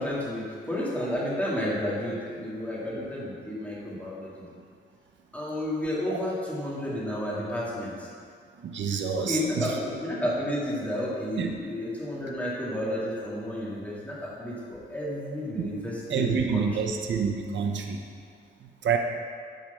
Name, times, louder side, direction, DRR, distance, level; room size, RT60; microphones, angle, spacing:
voice 1, 0.0-4.4 5.3-8.1 8.8-16.8, left 1 dB, 10° left, -7 dB, 2.4 m, -31 dB
voice 2, 8.6-9.7 11.4-11.6 15.6-18.0 18.8-19.0, right 6 dB, 80° right, 3 dB, 0.8 m, -28 dB
9.4 x 4.9 x 7.0 m, 2.2 s
wide cardioid pair, 150°, 19 cm